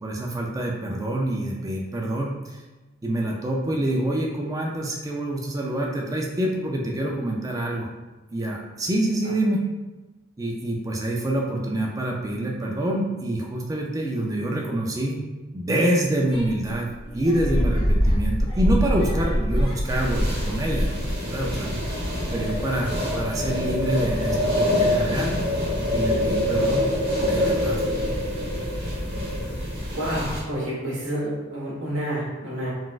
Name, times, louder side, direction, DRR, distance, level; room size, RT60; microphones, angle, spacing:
voice 1, 0.0-2.6 3.0-7.9 8.3-9.6 10.4-15.2 15.5-16.9 17.1-21.7 22.3-25.4 25.9-26.8 27.2-27.8, right 1 dB, 15° right, -1 dB, 0.4 m, -26 dB
sound 1, 16.3-21.6 22.3-23.3, equal, 25° left, 0.8 m, -25 dB
sound 2, 19.8-30.4, left 1 dB, 50° right, 1.3 m, -25 dB
voice 2, 29.9-32.7, equal, 75° right, -7 dB, 1.3 m, -29 dB
3.8 x 2.4 x 2.4 m, 1.1 s
head